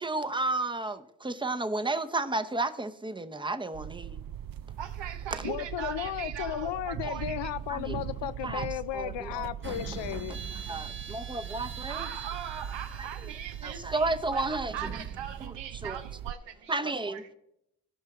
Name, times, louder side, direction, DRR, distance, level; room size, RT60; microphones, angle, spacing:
voice 1, 0.0-4.2 5.3-5.5 7.0-7.1 7.7-8.0 8.4-8.7 8.9-9.5 10.7-12.1 13.0-13.1 13.6-14.8 15.4-15.5 15.8-16.0 16.7-17.3, right 2 dB, 10° right, 0.8 m, -32 dB
sound 1, 3.7-16.3, right 11 dB, 55° right, 0.5 m, -40 dB
voice 2, 4.8-7.6 11.9-17.2, right 8 dB, 85° right, 1.0 m, -40 dB
voice 3, 5.4-10.4, left 12 dB, 80° left, 0.6 m, -34 dB
sound 2, 9.6-15.5, right 4 dB, 30° right, 1.0 m, -43 dB
16.0 x 5.6 x 3.7 m
cardioid pair, 55°, 43 cm